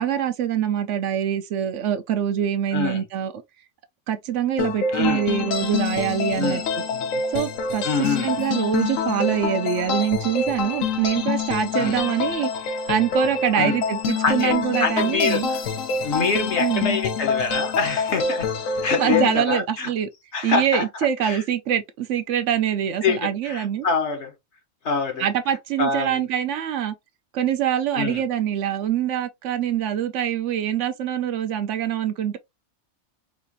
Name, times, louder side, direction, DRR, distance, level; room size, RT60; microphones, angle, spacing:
voice 1, 0.0-3.3 4.1-6.8 7.3-15.5 16.6-17.0 19.0-20.1 20.4-23.9 25.2-26.9 27.3-32.4, right 9 dB, 70° right, 0.9 m, -24 dB
voice 2, 2.7-3.0 4.9-5.2 6.4-6.6 6.9-7.2 7.8-8.4 11.8-12.0 13.6-13.8 14.2-15.4 16.0-18.5 18.8-19.9 20.3-20.9 21.2-21.4 23.0-24.3 24.8-25.3 25.8-26.3 27.9-28.2, left 5 dB, 60° left, 1.3 m, -25 dB
sound 1, 4.6-19.4, left 5 dB, 85° left, 1.1 m, -26 dB
4.8 x 2.5 x 2.7 m
omnidirectional pair, 1.3 m